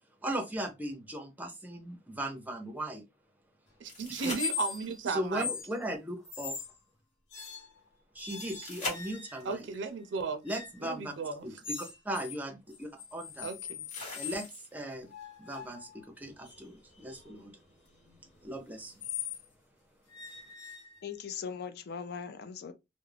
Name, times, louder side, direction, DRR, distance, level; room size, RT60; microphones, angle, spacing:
voice 1, 0.2-3.0 4.1-4.3 5.1-6.6 8.1-9.7 10.4-11.1 11.4-13.5 14.1-15.1 15.4-17.5 18.4-19.0, right 1 dB, 10° right, 0.5 m, -38 dB
sound 1, 3.8-5.1 8.6-9.6 11.5-11.6 13.9-14.9 17.9-18.0, left 2 dB, 40° left, 1.1 m, -41 dB
voice 2, 3.8-5.5 9.4-10.4 10.8-11.4 13.4-13.6, right 4 dB, 70° right, 0.4 m, -35 dB
sound 2, 4.3-5.0 5.3-5.7 6.3-6.8 7.3-7.8 8.2-9.5 10.5-10.8 11.6-12.4 12.7-14.5 15.1-19.5 20.1-21.3, left 7 dB, 75° left, 0.8 m, -41 dB
voice 3, 21.0-22.7, left 6 dB, 55° left, 0.4 m, -39 dB
2.4 x 2.0 x 3.2 m
head